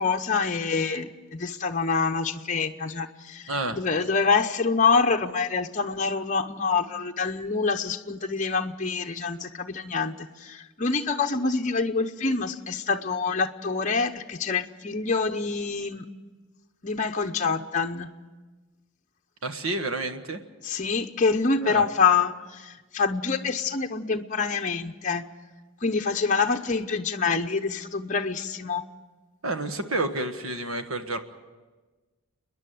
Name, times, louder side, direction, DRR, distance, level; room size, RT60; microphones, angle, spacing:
voice 1, 0.0-3.4 3.7-10.1 10.4-16.0 16.8-18.1 20.6-25.2 25.8-28.8, left 4 dB, 35° left, 4 dB, 0.8 m, -26 dB
voice 2, 3.5-3.8 19.4-20.4 21.6-21.8 29.4-31.2, right 2 dB, 75° right, 8 dB, 1.5 m, -29 dB
29.5 x 10.5 x 9.3 m, 1.3 s
head